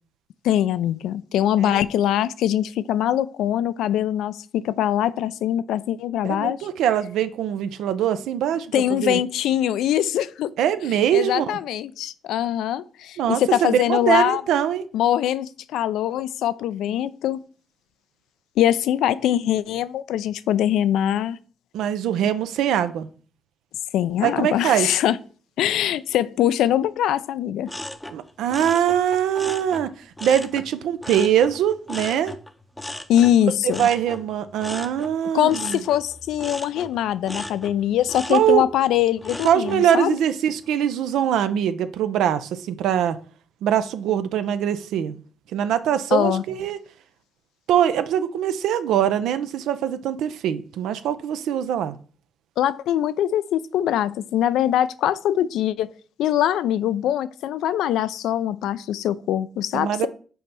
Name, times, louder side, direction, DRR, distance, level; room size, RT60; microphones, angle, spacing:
voice 1, 0.4-6.6 8.7-10.5 11.1-14.4 14.9-17.4 18.6-21.4 23.9-25.2 25.6-27.7 33.1-33.9 35.3-40.2 46.1-46.4 52.6-55.9 56.2-60.1, left 11 dB, 85° left, 0.4 m, -22 dB
voice 2, 6.2-9.2 10.6-11.6 13.2-14.8 21.7-23.1 24.2-24.9 28.1-29.9 30.2-32.3 33.6-35.8 38.3-38.6 39.4-43.2 43.6-45.2 45.5-46.8 47.7-51.9 59.7-60.1, right 9 dB, 85° right, 0.6 m, -22 dB
sound 1, 27.7-30.7 31.0-39.9 40.3-40.7, left 1 dB, 10° left, 0.6 m, -37 dB
5.6 x 4.4 x 5.4 m
cardioid pair, 90°, 0 cm